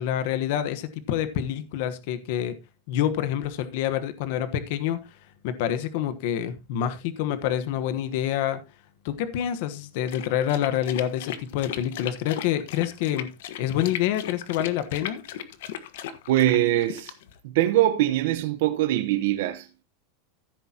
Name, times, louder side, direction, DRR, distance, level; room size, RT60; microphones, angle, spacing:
voice 1, 0.0-2.6 2.9-5.0 5.4-8.6 9.0-13.3 13.6-15.2, left 10 dB, 55° left, 1.2 m, -27 dB
sound 1, 10.1-17.4, left 10 dB, 70° left, 1.4 m, -37 dB
voice 2, 16.3-17.1 17.4-19.8, right 14 dB, 65° right, 1.0 m, -23 dB
15.0 x 8.0 x 2.9 m
supercardioid pair, 170°, 0 cm